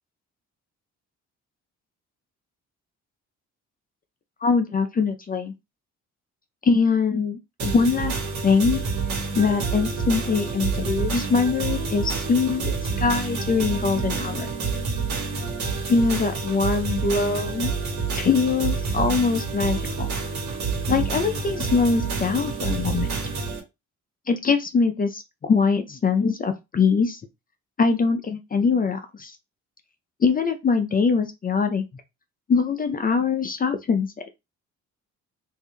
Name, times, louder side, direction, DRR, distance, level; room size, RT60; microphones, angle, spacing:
voice 1, 4.4-5.5 6.6-8.1 8.4-8.8 9.3-14.5 15.9-17.7 18.1-20.1 20.9-23.1 24.3-27.2 27.8-29.4 30.2-31.8 32.5-34.1, left 5 dB, 30° left, 0.5 m, -23 dB
sound 1, 7.6-23.6, right 4 dB, 70° right, 1.4 m, -28 dB
3.4 x 2.6 x 3.3 m
cardioid pair, 90°, 30 cm